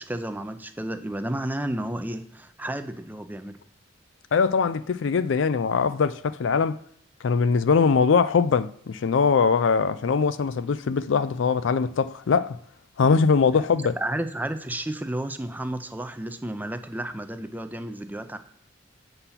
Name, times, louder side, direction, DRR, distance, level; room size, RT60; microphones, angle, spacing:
voice 1, 0.0-3.6 14.0-18.4, right 1 dB, 10° right, 0.5 m, -32 dB
voice 2, 4.3-6.8 7.2-12.6 13.0-14.0, left 5 dB, 75° left, 0.4 m, -22 dB
8.1 x 3.9 x 5.8 m
head